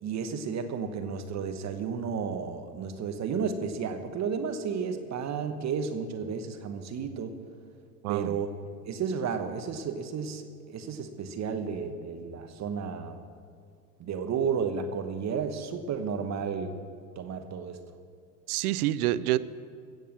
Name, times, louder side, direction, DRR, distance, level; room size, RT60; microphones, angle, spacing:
voice 1, 0.0-7.3 8.1-13.2 14.0-16.8 17.2-17.8, right 6 dB, 35° right, 8 dB, 1.1 m, -32 dB
voice 2, 8.0-8.4 18.5-19.4, right 15 dB, 70° right, 17 dB, 0.7 m, -27 dB
15.5 x 7.2 x 7.4 m, 2.2 s
hypercardioid pair, 85°, 47 cm